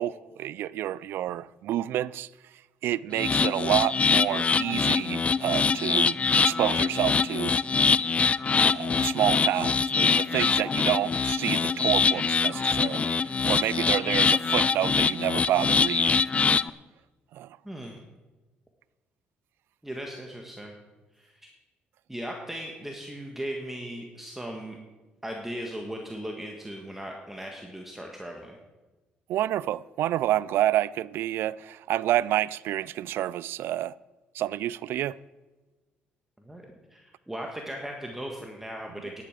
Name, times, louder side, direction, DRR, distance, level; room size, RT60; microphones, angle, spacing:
voice 1, 0.0-2.3 2.8-7.5 8.7-13.2 13.5-16.2 17.3-17.5 29.3-33.9 34.3-35.2, right 13 dB, 75° right, 0.4 m, -28 dB
sound 1, 3.1-16.7, left 5 dB, 35° left, 0.4 m, -24 dB
voice 2, 17.6-18.0 19.8-20.8 21.1-21.5 22.1-24.8 25.2-28.6 36.4-36.6 36.9-39.2, equal, 5° right, 1.7 m, -38 dB
10.5 x 8.6 x 7.5 m
cardioid pair, 80°, 4 cm